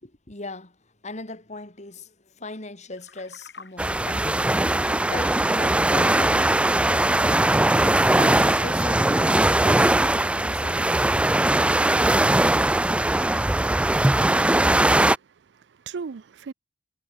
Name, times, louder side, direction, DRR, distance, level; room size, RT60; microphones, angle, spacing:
voice 1, 0.0-11.1, left 2 dB, 45° left, 3.6 m, -39 dB
sound 1, 2.9-9.5, left 4 dB, 75° left, 7.1 m, -53 dB
sound 2, 3.8-15.2, right 1 dB, 5° right, 0.3 m, -20 dB
voice 2, 15.1-16.5, right 5 dB, 80° right, 0.5 m, -38 dB
head